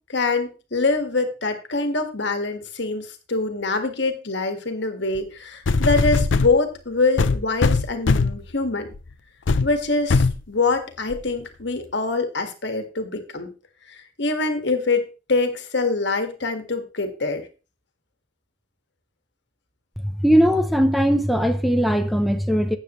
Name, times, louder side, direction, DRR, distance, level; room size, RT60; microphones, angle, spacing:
voice 1, 0.1-8.9 9.6-13.5 13.9-17.5, left 3 dB, 65° left, 1.7 m, -24 dB
sound 1, 5.1-5.2 5.7-6.5 7.2-8.4 8.9-9.1 9.5-9.7 10.1-10.4 11.1-11.2, left 3 dB, 85° left, 0.6 m, -20 dB
voice 2, 20.0-22.8, equal, ahead, 0.7 m, -19 dB
12.5 x 8.8 x 3.1 m
head